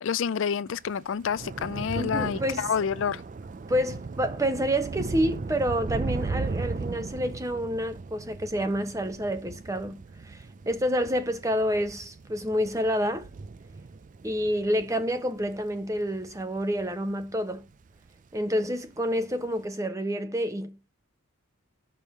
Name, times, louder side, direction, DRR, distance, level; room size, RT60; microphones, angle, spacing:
voice 1, 0.0-3.2, left 7 dB, 60° left, 0.4 m, -28 dB
Thunder / Rain, 0.8-17.4 17.7-18.1 18.4-18.6, right 4 dB, 35° right, 0.4 m, -37 dB
voice 2, 1.9-2.7 3.7-13.3 14.2-17.7 18.3-20.9, equal, 15° right, 0.9 m, -28 dB
6.3 x 5.4 x 6.6 m
head